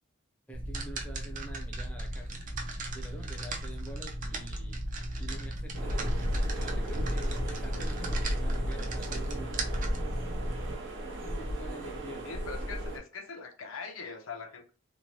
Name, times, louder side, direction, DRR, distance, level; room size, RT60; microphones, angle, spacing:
voice 1, 0.5-2.5 2.9-4.8 5.2-9.6 11.2-12.3, right 2 dB, 5° left, 0.6 m, -47 dB
sound 1, 0.5-10.8, right 1 dB, 40° right, 0.5 m, -36 dB
sound 2, 5.7-13.0, equal, 65° right, 0.9 m, -33 dB
voice 2, 12.2-14.7, left 5 dB, 85° left, 0.6 m, -42 dB
3.0 x 2.1 x 2.9 m
head